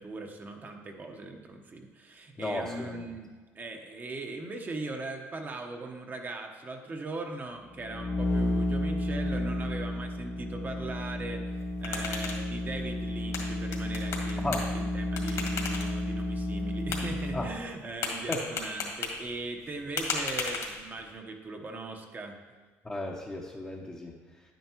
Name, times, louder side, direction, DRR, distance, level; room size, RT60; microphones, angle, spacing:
voice 1, 0.0-3.3 3.5-11.4 11.8-22.4, right 2 dB, 30° right, 3 dB, 1.0 m, -39 dB
voice 2, 2.4-3.1 14.4-14.6 17.3-17.5 18.3-18.4 22.8-24.4, left 2 dB, 15° left, -3 dB, 0.9 m, -35 dB
sound 1, 7.7-17.6, left 1 dB, 35° left, 0.8 m, -32 dB
sound 2, 11.5-21.1, left 4 dB, 60° left, 2.0 m, -38 dB
9.9 x 9.2 x 3.0 m, 1.3 s
cardioid pair, 105°, 6 cm